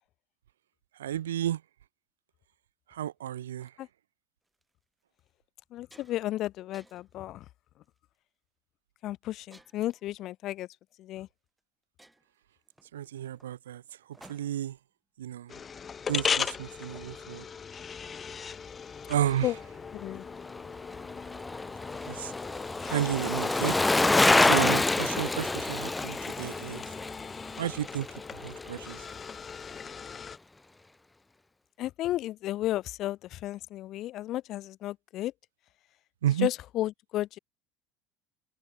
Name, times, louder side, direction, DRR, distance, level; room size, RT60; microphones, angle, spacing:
voice 1, 1.0-1.6 2.9-3.7 12.9-13.8 14.3-14.8 15.2-15.5 16.1-17.4 19.1-19.5 22.1-22.3 22.8-23.8 24.4-26.8 27.6-28.1 28.4-29.0 36.2-36.5, right 11 dB, 80° right, 0.3 m, -32 dB
sound 1, 4.5-4.6 5.2-5.3 5.6-6.3 6.7-7.2 7.9-8.2 9.5-10.0 11.2-11.3 11.6-11.7 12.0-14.8, right 1 dB, 10° right, 5.7 m, -58 dB
voice 2, 5.7-7.5 9.0-10.7 11.0-11.3 19.4-19.6 19.9-20.3 31.8-35.3 36.4-37.4, left 14 dB, 55° left, 0.5 m, -33 dB
sound 2, 15.5-30.4, left 6 dB, 30° left, 4.0 m, -38 dB
Bicycle, 20.4-28.8 29.1-29.2, left 2 dB, 15° left, 0.7 m, -27 dB
open air
figure-of-eight pair, 65°, 0 cm